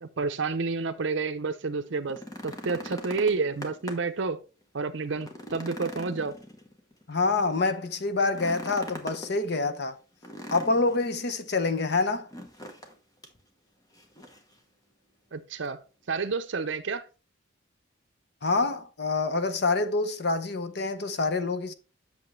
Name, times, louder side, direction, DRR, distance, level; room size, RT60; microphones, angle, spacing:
voice 1, 0.0-4.4 4.7-6.4 15.3-15.8 16.1-17.1, right 4 dB, 65° right, 0.6 m, -30 dB
sound 1, 1.9-4.2 4.6-4.7 5.1-7.0 8.2-9.3 10.2-11.1 12.3-12.9 13.2-13.4 13.9-14.5 15.6-15.7, equal, 20° left, 1.1 m, -41 dB
voice 2, 7.1-10.0 10.5-12.3 18.4-21.7, left 3 dB, 55° left, 0.8 m, -26 dB
8.3 x 6.5 x 3.2 m
head